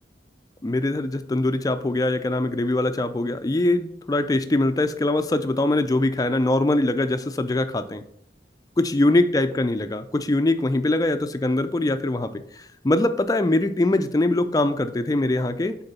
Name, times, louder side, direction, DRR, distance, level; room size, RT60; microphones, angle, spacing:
voice 1, 0.6-8.0 8.8-15.8, left 2 dB, 20° left, 9 dB, 0.4 m, -22 dB
6.7 x 4.4 x 4.1 m, 0.69 s
head